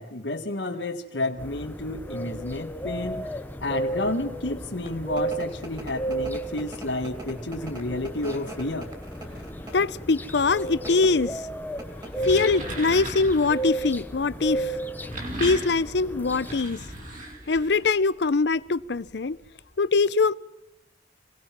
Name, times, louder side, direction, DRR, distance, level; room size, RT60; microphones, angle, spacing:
voice 1, 0.0-8.9, left 2 dB, 80° left, 1.9 m, -31 dB
sound 1, 1.4-16.6, right 1 dB, 10° left, 0.8 m, -34 dB
sound 2, 4.6-19.8, right 1 dB, 25° right, 3.2 m, -45 dB
voice 2, 9.7-11.5 12.2-14.8 15.4-16.8 17.5-19.4 19.8-20.3, left 4 dB, 65° left, 0.6 m, -23 dB
sound 3, 12.0-13.6 14.8-17.9, right 1 dB, 45° right, 6.0 m, -36 dB
26.0 x 18.5 x 6.0 m
head